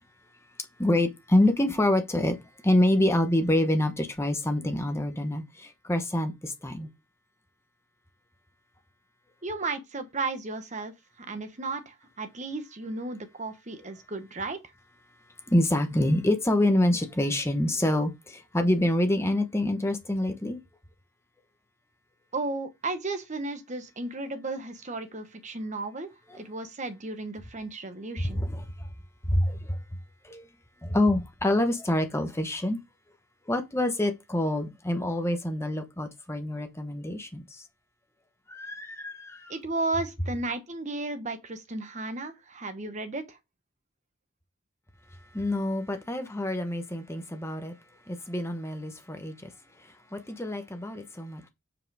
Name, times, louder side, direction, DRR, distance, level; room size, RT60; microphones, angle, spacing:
voice 1, 0.8-2.4 2.6-6.9 15.5-20.6 28.2-28.9 29.2-29.8 30.2-30.5 30.8-32.8 33.5-37.6 38.5-39.5 45.3-47.7 48.1-49.5 50.1-51.5, left 1 dB, 15° left, 1.0 m, -26 dB
voice 2, 9.4-10.9 11.2-14.6 22.3-28.4 39.5-43.4, right 3 dB, 35° right, 1.1 m, -34 dB
5.7 x 5.0 x 4.8 m
head